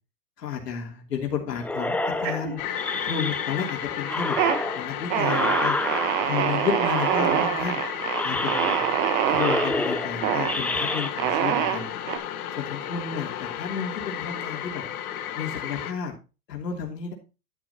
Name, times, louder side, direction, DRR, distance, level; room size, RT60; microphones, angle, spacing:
voice 1, 0.4-2.6 3.0-4.4 4.7-5.8 6.2-7.8 8.2-8.9 9.3-11.9 12.6-14.8 15.3-16.1 16.5-17.1, left 7 dB, 85° left, 1 dB, 3.1 m, -31 dB
sound 1, 1.6-3.7 4.0-6.4 6.8-7.7 8.1-9.1 9.3-11.1, left 2 dB, 5° left, 0.7 m, -29 dB
sound 2, 2.2-3.0 3.3-3.8 4.2-4.6 5.1-9.7 10.2-10.6 11.2-12.2, right 10 dB, 50° right, 1.5 m, -25 dB
sound 3, 2.6-15.9, left 10 dB, 65° left, 1.7 m, -33 dB
11.5 x 7.7 x 2.9 m, 0.30 s
hypercardioid pair, 120°, 47 cm